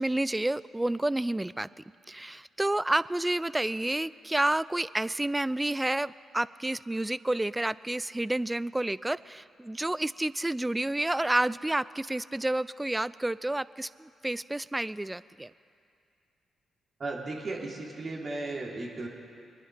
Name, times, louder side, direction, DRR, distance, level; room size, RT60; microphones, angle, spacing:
voice 1, 0.0-1.7 2.1-15.5, right 1 dB, 15° right, 19 dB, 0.4 m, -30 dB
voice 2, 17.0-19.1, right 2 dB, 50° right, -2 dB, 3.3 m, -35 dB
24.0 x 10.0 x 5.8 m, 2.4 s
hypercardioid pair, 50°, 0 cm